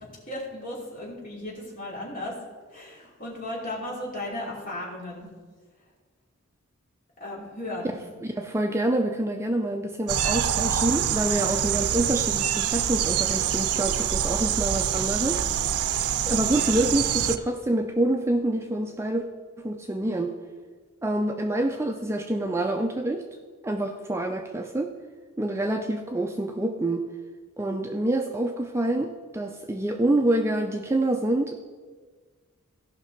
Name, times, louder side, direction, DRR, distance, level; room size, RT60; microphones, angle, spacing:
voice 1, 0.3-2.4 2.7-5.3 7.2-7.9, left 1 dB, 40° left, -4 dB, 2.8 m, -35 dB
voice 2, 8.2-15.4 16.2-19.3 19.6-20.3 21.0-23.2 23.6-24.9 25.4-27.1 27.6-31.6, right 1 dB, 10° right, 4 dB, 0.4 m, -26 dB
sound 1, 10.1-17.4, right 9 dB, 85° right, 0.5 m, -25 dB
16.0 x 5.8 x 4.5 m, 1.5 s
head